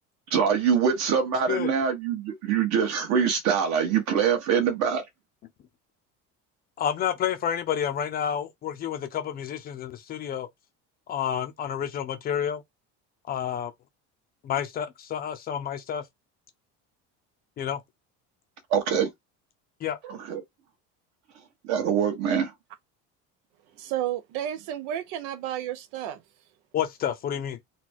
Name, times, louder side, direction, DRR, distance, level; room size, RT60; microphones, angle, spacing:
voice 1, 0.3-5.0 18.7-19.1 20.1-20.4 21.6-22.5, right 7 dB, 55° right, 1.6 m, -24 dB
voice 2, 6.8-10.5 11.1-12.6 13.3-13.7 14.4-16.0 17.6-17.8 19.8-20.0 26.7-27.6, left 9 dB, 30° left, 0.5 m, -29 dB
voice 3, 23.8-26.2, right 11 dB, 85° right, 0.7 m, -32 dB
4.1 x 2.3 x 4.5 m
cardioid pair, 180°, 32 cm